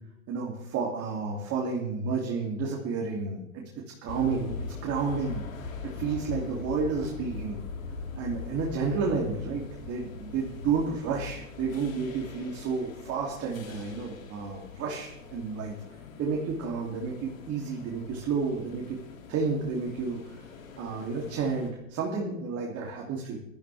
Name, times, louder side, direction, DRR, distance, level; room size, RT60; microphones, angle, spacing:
voice 1, 0.3-3.6 4.0-4.5 4.8-7.6 8.2-15.8 16.2-19.0 19.3-20.5 20.8-23.4, right 5 dB, 35° right, -2 dB, 3.1 m, -31 dB
sound 1, 4.1-21.7, left 5 dB, 75° left, 2.9 m, -42 dB
17.0 x 13.0 x 3.5 m, 0.87 s
hypercardioid pair, 105°, 40 cm